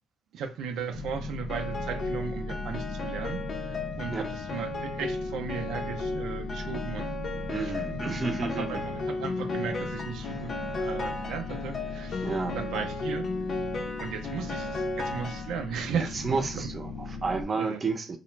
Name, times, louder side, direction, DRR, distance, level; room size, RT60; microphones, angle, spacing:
voice 1, 0.3-7.1 7.6-10.5 10.8-13.3 14.0-16.7 17.6-17.8, right 6 dB, 85° right, 0.4 m, -36 dB
sound 1, 0.9-17.4, left 3 dB, 90° left, 1.0 m, -38 dB
Piano, 1.5-15.9, left 2 dB, 50° left, 0.5 m, -35 dB
voice 2, 7.5-8.8 10.2-10.4 12.2-12.6 15.9-18.2, right 4 dB, 35° right, 0.6 m, -31 dB
2.4 x 2.0 x 3.1 m
cardioid pair, 90°, 0 cm